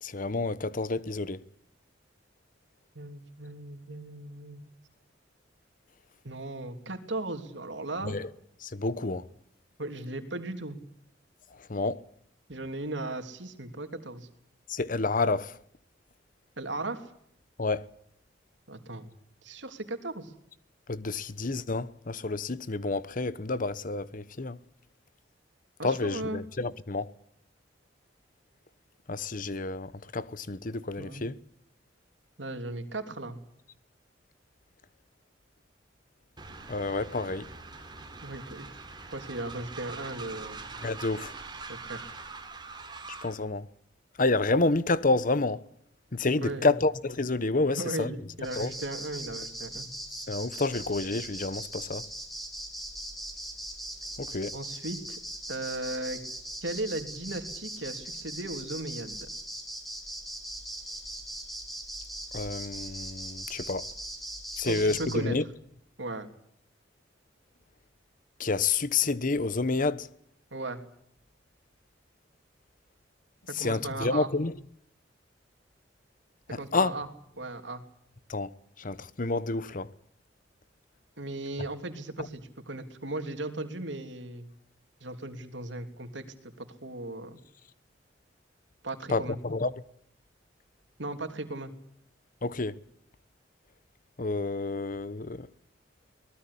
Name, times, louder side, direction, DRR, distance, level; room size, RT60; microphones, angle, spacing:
voice 1, 0.0-1.4 8.0-8.3 8.6-9.2 11.7-12.0 14.7-15.5 17.6-17.9 20.9-24.6 25.8-27.1 29.1-31.3 36.7-37.5 40.8-41.3 43.2-43.7 44.2-45.6 46.1-48.2 48.6-48.7 50.3-52.0 54.2-54.5 62.3-63.9 64.6-65.4 68.4-70.1 73.6-74.5 76.5-76.9 78.3-78.5 78.8-79.9 89.1-89.7 92.4-92.7 94.2-95.5, left 3 dB, 45° left, 1.0 m, -29 dB
voice 2, 2.9-4.7 6.2-8.2 9.8-10.8 12.5-14.3 16.6-17.1 18.7-19.1 19.4-20.3 25.8-26.4 31.0-31.3 32.4-33.4 38.2-38.8 39.1-40.6 41.7-42.1 46.4-46.8 47.7-49.9 54.5-55.2 55.5-56.2 56.6-59.3 64.6-65.4 66.0-66.3 70.5-70.8 73.5-74.3 76.6-77.1 77.4-77.8 81.2-84.5 85.0-87.4 88.8-89.4 91.0-91.7, right 2 dB, 80° right, 3.1 m, -37 dB
Train, 36.4-43.4, right 4 dB, 25° right, 3.6 m, -43 dB
sound 1, 48.4-65.2, right 1 dB, ahead, 5.1 m, -40 dB
23.5 x 19.5 x 8.5 m
head